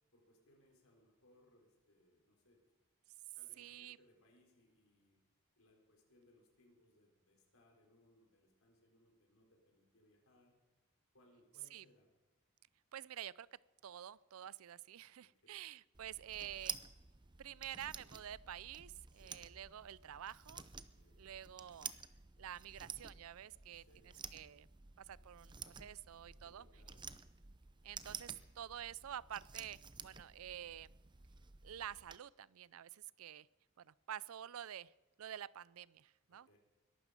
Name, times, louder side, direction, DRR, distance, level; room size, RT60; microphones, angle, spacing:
voice 1, 0.1-2.6 3.3-5.2 5.6-10.6 11.1-12.1 15.2-15.6 19.1-19.4 21.0-21.3 23.7-24.1 26.3-27.2 36.3-36.6, left 1 dB, 80° left, 1 dB, 4.7 m, -70 dB
voice 2, 3.6-4.0 11.7-11.9 12.9-16.8 17.4-20.6 21.2-21.9 22.4-23.8 24.3-24.7 25.0-26.7 27.8-30.9 31.6-33.5 33.8-34.9 35.2-36.6, right 10 dB, 85° right, 22 dB, 0.4 m, -49 dB
sound 1, 15.9-32.2, right 6 dB, 20° right, 0.7 m, -52 dB
22.0 x 12.5 x 5.2 m, 1.2 s
head